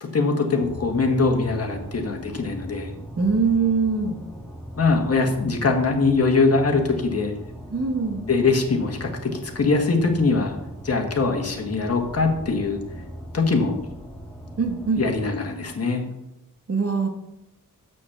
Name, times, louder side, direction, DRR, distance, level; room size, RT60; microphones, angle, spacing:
voice 1, 0.0-2.9 4.8-7.3 8.3-10.5 10.8-12.8 13.3-13.8 15.0-16.0, left 3 dB, 45° left, 2 dB, 1.6 m, -22 dB
sound 1, 0.6-15.8, right 1 dB, 5° left, 1.7 m, -40 dB
voice 2, 3.2-4.2 7.7-8.2 14.6-15.0 16.7-17.1, right 4 dB, 45° right, 4 dB, 1.6 m, -22 dB
7.0 x 6.4 x 7.1 m, 0.86 s
wide cardioid pair, 130°, 34 cm